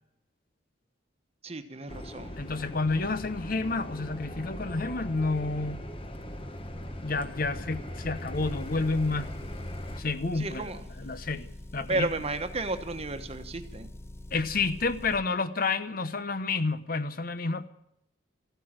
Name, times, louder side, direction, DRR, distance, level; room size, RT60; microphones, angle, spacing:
voice 1, 1.4-2.3 10.4-10.8 11.9-13.9, right 2 dB, 35° right, 1.2 m, -33 dB
sound 1, 1.9-10.0, equal, 30° left, 1.3 m, -39 dB
voice 2, 2.4-5.9 7.0-9.4 10.0-12.1 14.3-17.7, left 3 dB, 50° left, 0.9 m, -30 dB
Motor vehicle (road) / Engine, 8.3-15.2, left 1 dB, 15° left, 0.5 m, -44 dB
14.5 x 9.2 x 8.9 m
head